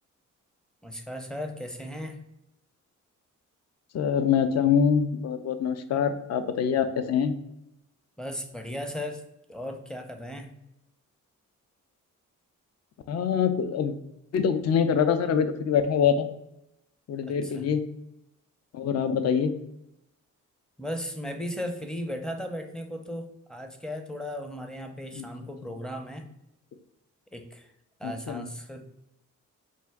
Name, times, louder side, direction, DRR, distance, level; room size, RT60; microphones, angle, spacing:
voice 1, 0.8-2.2 8.2-9.2 9.5-10.5 17.3-17.7 20.8-26.3 27.3-27.7 28.0-28.8, equal, ahead, 5 dB, 0.5 m, -36 dB
voice 2, 3.9-7.4 13.1-13.9 14.3-16.3 17.1-17.8 18.7-19.6 25.1-25.2 28.0-28.4, left 7 dB, 50° left, 10 dB, 0.5 m, -24 dB
4.2 x 2.5 x 3.5 m, 0.84 s
cardioid pair, 90°, 32 cm